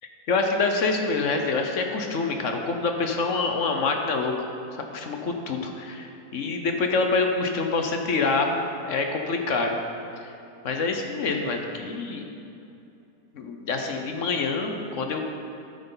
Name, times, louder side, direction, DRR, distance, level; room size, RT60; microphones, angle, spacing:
voice 1, 0.3-4.3 4.9-9.8 10.6-12.3 13.3-15.2, left 3 dB, 55° left, 4 dB, 1.1 m, -26 dB
12.5 x 9.3 x 3.9 m, 2.7 s
omnidirectional pair, 1.8 m